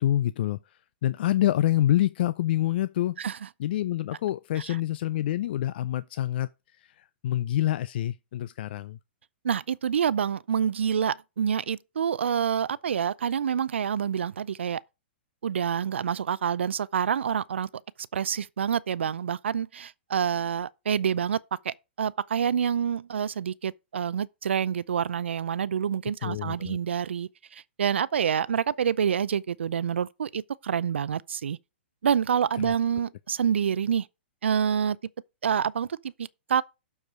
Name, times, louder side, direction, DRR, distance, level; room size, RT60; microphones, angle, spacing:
voice 1, 0.0-3.2 3.6-9.0 26.2-26.8 32.6-32.7, left 13 dB, 60° left, 0.4 m, -27 dB
voice 2, 9.4-14.8 15.4-17.7 18.1-21.4 21.6-31.6 32.0-34.1 34.4-35.0 35.4-36.6, right 8 dB, 80° right, 0.5 m, -27 dB
12.0 x 4.6 x 4.9 m
hypercardioid pair, 125°, 6 cm